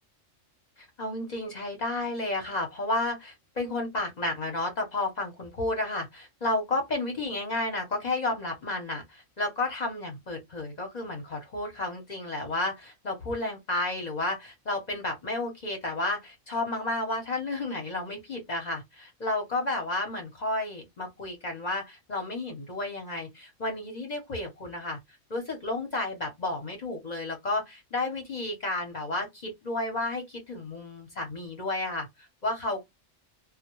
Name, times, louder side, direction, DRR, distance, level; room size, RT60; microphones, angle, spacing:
voice 1, 0.8-25.0 25.3-32.8, left 2 dB, 45° left, 0.6 m, -32 dB
2.1 x 2.0 x 2.9 m
omnidirectional pair, 1.3 m